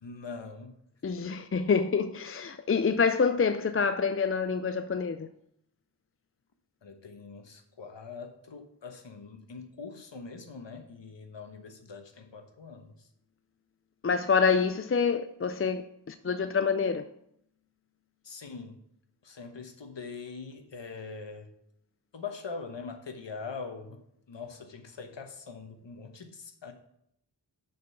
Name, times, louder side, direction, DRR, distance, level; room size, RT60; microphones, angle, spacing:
voice 1, 0.0-0.8 6.8-13.1 18.2-18.8 19.2-21.5 22.1-26.7, left 4 dB, 80° left, 1.1 m, -43 dB
voice 2, 1.0-5.3 14.0-15.8 16.1-17.0, left 5 dB, 35° left, 0.4 m, -27 dB
6.8 x 5.4 x 6.7 m
wide cardioid pair, 70°, 43 cm